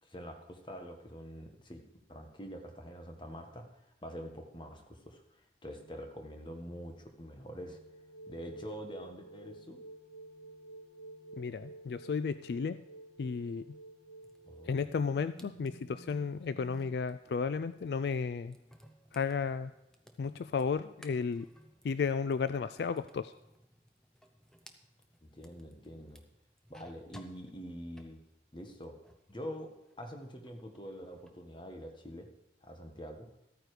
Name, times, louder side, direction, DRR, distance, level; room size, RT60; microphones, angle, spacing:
voice 1, 0.0-7.8 8.3-9.8 14.5-14.8 25.2-26.2 26.7-28.2 28.5-29.0 29.3-32.3 32.6-33.3, equal, 25° left, 4 dB, 1.4 m, -45 dB
sound 1, 5.8-17.0, right 2 dB, 80° left, 1.5 m, -52 dB
voice 2, 11.4-12.8 13.2-13.8 14.6-18.6 19.1-19.7 20.2-21.5 21.8-23.3, left 5 dB, 65° left, 13 dB, 0.3 m, -33 dB
sound 2, 14.2-29.4 29.7-31.4, equal, 5° left, 0.8 m, -61 dB
13.5 x 9.1 x 4.9 m, 0.93 s
head